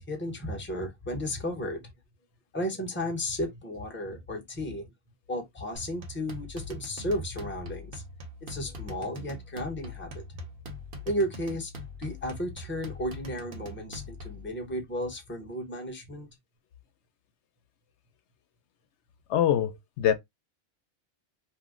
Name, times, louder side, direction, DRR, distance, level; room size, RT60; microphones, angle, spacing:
voice 1, 0.0-1.9 2.5-4.9 5.3-8.0 8.4-10.4 11.0-16.3, equal, 10° left, 0.7 m, -34 dB
sound 1, 5.7-14.5, left 1 dB, 55° right, 0.9 m, -42 dB
voice 2, 19.3-20.1, left 10 dB, 85° left, 0.9 m, -24 dB
2.7 x 2.0 x 3.5 m
omnidirectional pair, 1.1 m